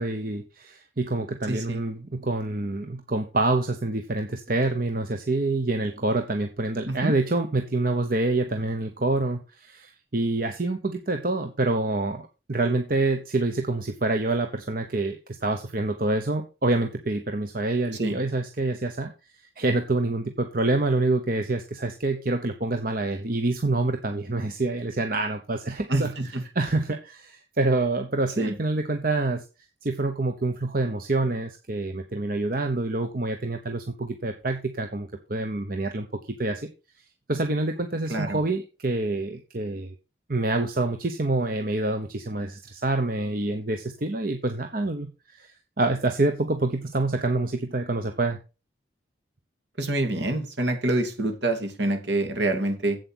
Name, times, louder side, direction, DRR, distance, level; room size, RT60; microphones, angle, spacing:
voice 1, 0.0-19.1 19.6-26.1 26.5-29.4 29.8-36.1 36.4-36.7 37.3-39.9 40.3-45.5 45.8-48.4, right 2 dB, 50° right, 6 dB, 1.0 m, -27 dB
voice 2, 1.5-1.8 6.9-7.1 17.9-18.2 25.9-26.4 28.4-28.5 38.1-38.4 49.8-53.0, right 2 dB, 70° right, 6 dB, 2.7 m, -26 dB
8.2 x 7.7 x 6.3 m, 0.31 s
head